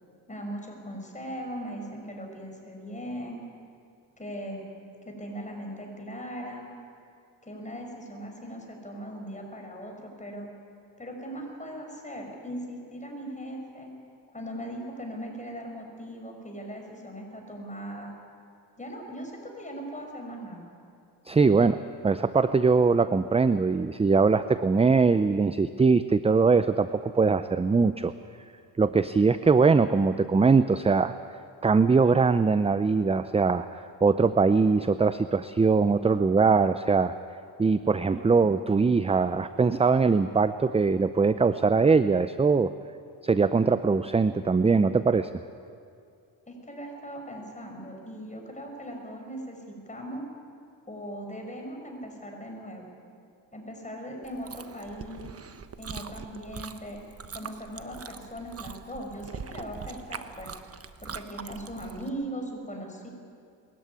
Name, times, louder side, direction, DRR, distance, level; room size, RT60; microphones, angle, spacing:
voice 1, 0.3-3.4 4.2-4.7 5.0-6.7 7.4-10.5 11.0-13.9 14.3-18.1 18.8-20.7 46.5-50.2 50.9-52.9 53.5-55.3 55.8-57.0 57.3-60.5 61.0-63.1, equal, 15° left, 2 dB, 6.3 m, -39 dB
voice 2, 21.3-28.1 28.8-31.1 31.6-37.1 37.6-42.7 43.2-45.3, right 4 dB, 15° right, 12 dB, 0.5 m, -22 dB
Chewing mastication, 54.2-62.1, right 6 dB, 35° right, 1.2 m, -42 dB
22.0 x 14.0 x 9.7 m, 2.4 s
cardioid pair, 75°, 43 cm